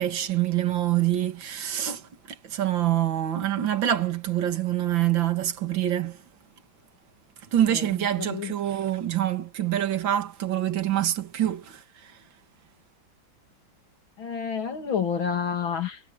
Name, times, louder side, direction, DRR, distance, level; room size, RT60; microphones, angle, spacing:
voice 1, 0.0-6.2 7.5-12.2, right 12 dB, 70° right, 2.5 m, -26 dB
voice 2, 8.2-8.5 14.2-16.0, left 7 dB, 80° left, 3.2 m, -29 dB
omnidirectional pair, 2.2 m